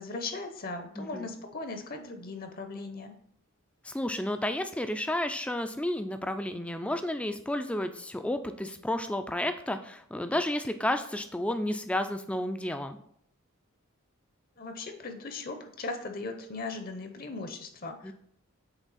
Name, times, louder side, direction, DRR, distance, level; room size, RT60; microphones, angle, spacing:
voice 1, 0.0-3.1 14.6-18.1, left 3 dB, 45° left, 6 dB, 0.7 m, -38 dB
voice 2, 1.0-1.3 3.8-13.0 18.0-18.1, left 1 dB, 5° left, 8 dB, 0.3 m, -31 dB
8.1 x 3.3 x 4.1 m, 0.67 s
head